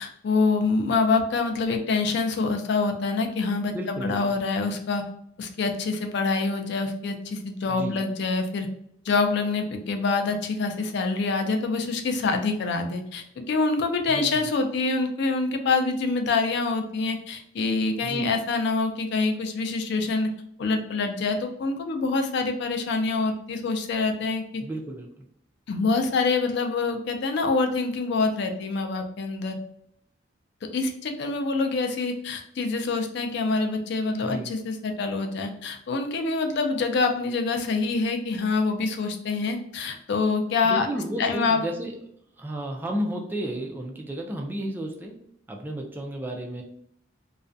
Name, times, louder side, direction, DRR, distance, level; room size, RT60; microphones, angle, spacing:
voice 1, 0.0-5.0 5.4-8.7 9.1-20.3 20.6-24.6 25.7-29.6 30.7-40.9 41.2-41.6, left 3 dB, 65° left, 5 dB, 0.4 m, -26 dB
voice 2, 3.7-4.2 7.7-8.0 14.1-14.5 18.0-18.3 24.6-25.2 34.2-34.5 40.6-41.9 42.4-45.2 45.5-46.6, right 1 dB, 10° right, 1 dB, 0.3 m, -32 dB
2.3 x 2.1 x 2.5 m, 0.70 s
head